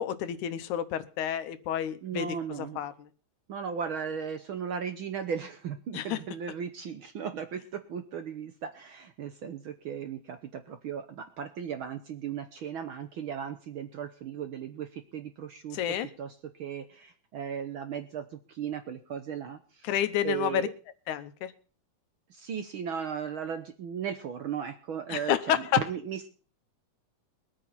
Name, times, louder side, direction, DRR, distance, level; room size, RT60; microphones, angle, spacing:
voice 1, 0.0-2.3 2.6-3.1 5.9-6.2 15.7-16.1 19.8-20.7 21.1-21.5 25.1-25.7, left 10 dB, 80° left, 12 dB, 2.3 m, -30 dB
voice 2, 2.0-2.8 3.5-15.8 16.2-19.9 20.2-20.7 22.3-26.3, right 7 dB, 75° right, 8 dB, 1.2 m, -36 dB
22.5 x 8.8 x 4.2 m, 0.39 s
omnidirectional pair, 3.5 m